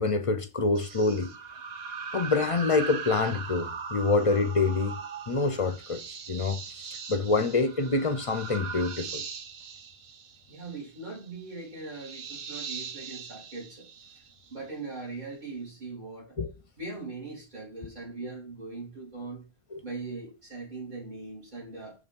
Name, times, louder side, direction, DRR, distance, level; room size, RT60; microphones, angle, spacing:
voice 1, 0.0-1.3 2.1-5.0 5.3-6.0 6.3-9.2 16.4-16.5 19.7-19.8, left 3 dB, 40° left, 0.6 m, -26 dB
sound 1, 0.7-14.6, right 5 dB, 70° right, 1.0 m, -40 dB
voice 2, 10.5-13.9 14.5-16.4 16.8-19.4 19.8-21.9, right 3 dB, 45° right, 3.6 m, -40 dB
7.1 x 3.4 x 5.2 m
omnidirectional pair, 1.1 m